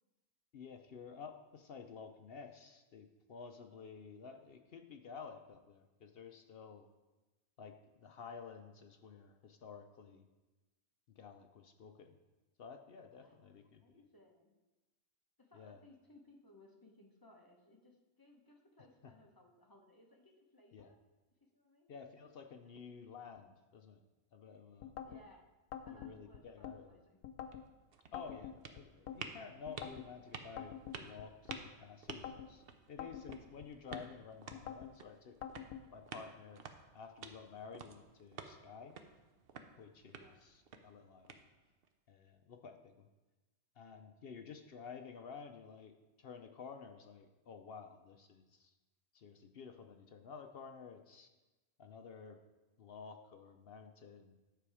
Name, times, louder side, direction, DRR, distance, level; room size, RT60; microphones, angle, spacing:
voice 1, 0.5-6.9 7.6-10.2 11.2-12.2 12.6-14.0 15.5-15.8 19.0-19.1 20.7-20.9 21.9-24.0 24.3-24.9 25.9-27.0 28.1-35.4 35.9-36.6 36.9-38.9 39.8-41.4 42.1-43.1 43.8-48.7 49.1-51.3 51.8-52.4 52.8-54.4, left 5 dB, 60° left, 6 dB, 0.6 m, -52 dB
voice 2, 13.2-14.5 15.4-21.0 21.5-21.9 22.7-22.8 25.1-25.4 25.8-27.2 40.2-40.4, left 1 dB, 15° left, 0 dB, 1.0 m, -63 dB
sound 1, 24.8-25.2 25.7-26.8 27.2-27.7 28.1-29.2 29.7-30.1 30.6-31.6 32.1-32.5 33.0-34.0 34.5-34.9 35.4-35.8, left 9 dB, 85° left, 1.1 m, -46 dB
sound 2, 27.3-41.9, right 5 dB, 50° right, 0.7 m, -53 dB
10.0 x 6.9 x 4.8 m, 1.1 s
omnidirectional pair, 1.6 m